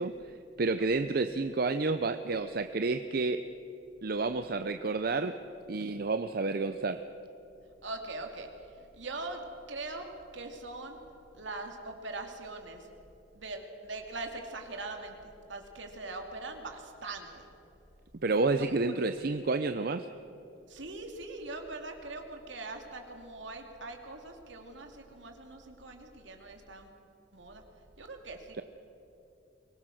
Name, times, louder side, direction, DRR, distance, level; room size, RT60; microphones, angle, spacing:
voice 1, 0.0-3.5 4.0-5.4 5.7-7.0 18.2-20.1, right 3 dB, 50° right, 9 dB, 0.6 m, -30 dB
voice 2, 7.8-8.5 8.8-11.0 11.3-12.9 13.3-17.5 18.6-19.1 20.7-26.9 27.3-27.6 28.0-28.6, right 2 dB, 70° right, 4 dB, 2.6 m, -42 dB
24.0 x 18.0 x 6.4 m, 3.0 s
head